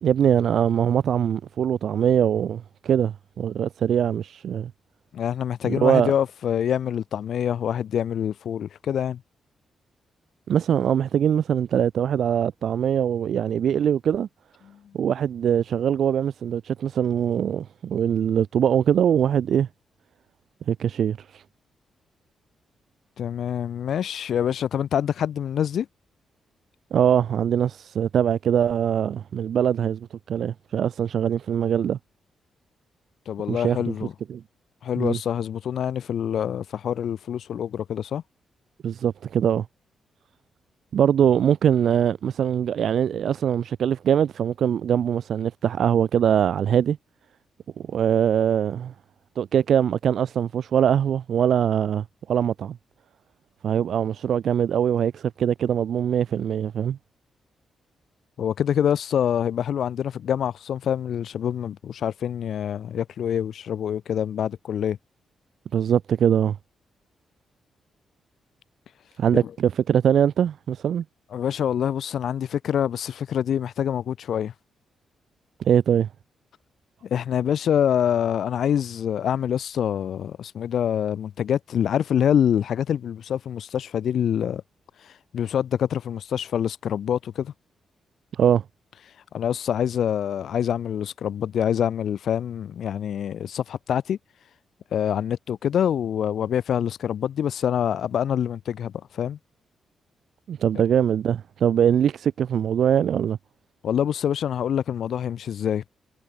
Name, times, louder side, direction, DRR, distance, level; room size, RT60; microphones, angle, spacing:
voice 1, 0.0-4.7 5.6-6.1 10.5-14.3 14.9-19.7 20.7-21.4 26.9-32.0 33.5-33.9 34.3-34.4 35.0-35.2 38.8-39.7 40.9-47.0 47.9-48.9 49.4-52.8 53.6-57.0 65.7-66.6 69.2-71.0 75.6-76.1 88.4-88.6 100.5-103.4, right 9 dB, 70° right, 0.4 m, -22 dB
voice 2, 5.1-9.2 23.2-25.9 33.3-34.1 34.8-38.2 58.4-65.0 69.4-69.5 71.3-74.5 77.0-84.6 85.3-87.5 89.3-94.2 94.9-99.4 103.8-105.8, left 9 dB, 70° left, 0.8 m, -25 dB
cardioid pair, 75°, 0 cm